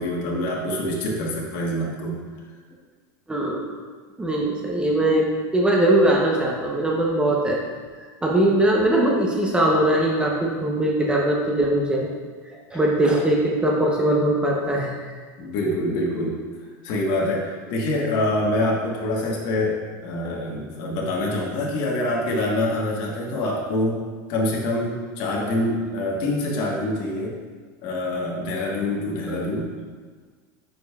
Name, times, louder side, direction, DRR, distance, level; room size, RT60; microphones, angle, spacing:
voice 1, 0.0-2.2 13.0-13.2 15.4-16.4 16.8-24.0 24.3-27.4 27.8-29.7, left 1 dB, 50° left, -2 dB, 1.3 m, -25 dB
voice 2, 3.3-3.6 4.2-7.6 8.0-12.1 12.7-15.1 29.3-29.4, right 1 dB, 10° right, -2 dB, 0.7 m, -21 dB
8.8 x 5.2 x 2.3 m, 1.5 s
supercardioid pair, 145°, 10 cm